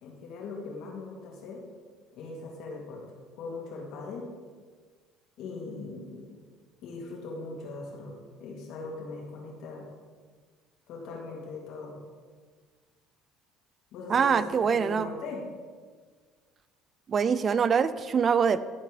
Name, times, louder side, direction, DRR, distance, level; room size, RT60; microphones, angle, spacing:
voice 1, 0.0-1.6 2.1-3.0 3.4-4.3 5.4-6.3 6.8-8.1 8.4-9.9 10.9-12.0 13.9-15.4, left 3 dB, 70° left, -1 dB, 3.0 m, -40 dB
voice 2, 14.1-15.1 17.1-18.6, right 6 dB, 40° right, 14 dB, 0.5 m, -24 dB
14.0 x 4.6 x 7.1 m, 1.5 s
supercardioid pair, 100°, 0 cm